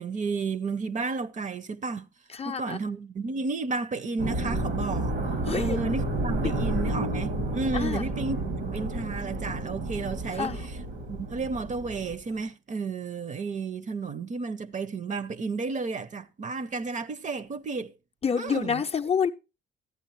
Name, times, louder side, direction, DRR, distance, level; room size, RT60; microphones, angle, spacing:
voice 1, 0.0-2.1 2.4-5.2 5.5-8.4 8.7-10.8 11.1-17.9 18.4-18.8, right 4 dB, 40° right, 0.7 m, -32 dB
voice 2, 2.3-2.8 5.5-5.8 6.4-6.5 7.7-8.1 10.3-10.7 18.2-19.3, left 6 dB, 30° left, 0.5 m, -28 dB
sound 1, 4.2-12.4, right 2 dB, 90° right, 2.4 m, -31 dB
13.0 x 8.8 x 3.1 m
cardioid pair, 90°, 20 cm